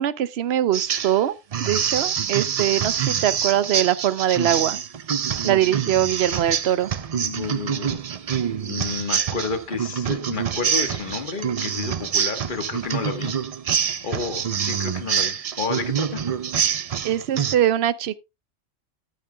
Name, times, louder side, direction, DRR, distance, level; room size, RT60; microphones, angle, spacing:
voice 1, 0.0-4.8 5.4-6.9 17.0-18.2, right 11 dB, 65° right, 0.9 m, -22 dB
sound 1, 0.7-1.2 1.5-17.6, right 7 dB, 50° right, 0.4 m, -26 dB
voice 2, 7.1-8.0 8.7-13.3 14.0-16.2, left 4 dB, 45° left, 1.6 m, -31 dB
14.0 x 9.1 x 2.3 m
omnidirectional pair, 1.2 m